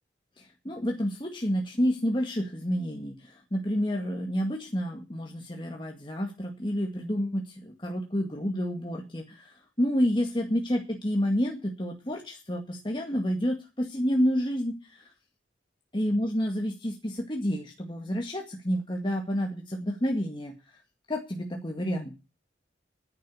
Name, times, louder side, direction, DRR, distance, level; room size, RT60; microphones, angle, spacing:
voice 1, 0.4-15.1 15.9-20.5 21.1-22.1, equal, 25° left, 1 dB, 2.0 m, -29 dB
10.5 x 10.5 x 7.1 m, 0.30 s
head